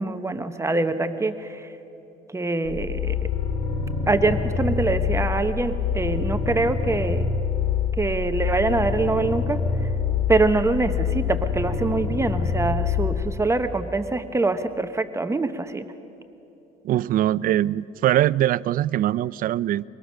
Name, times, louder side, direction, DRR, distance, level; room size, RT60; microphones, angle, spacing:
voice 1, 0.0-1.3 2.3-3.2 4.1-7.3 8.0-9.6 10.3-15.9, right 3 dB, 15° right, 9 dB, 0.9 m, -24 dB
sound 1, 2.7-13.3, left 6 dB, 70° left, 3.1 m, -26 dB
voice 2, 16.8-19.8, right 13 dB, 55° right, 20 dB, 0.4 m, -22 dB
23.5 x 18.5 x 6.3 m, 2.9 s
cardioid pair, 110°, 17 cm